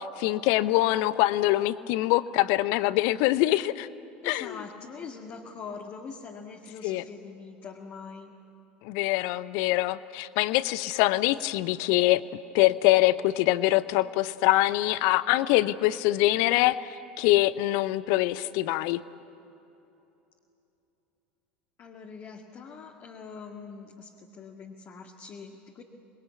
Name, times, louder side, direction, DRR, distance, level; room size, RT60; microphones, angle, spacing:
voice 1, 0.0-3.9 4.2-4.6 6.8-7.0 8.8-12.2 12.5-19.0, left 17 dB, 60° left, 16 dB, 0.7 m, -24 dB
voice 2, 4.2-8.3 21.8-25.8, left 5 dB, 40° left, 1 dB, 2.0 m, -43 dB
26.0 x 21.0 x 8.4 m, 2.9 s
hypercardioid pair, 75°, 6 cm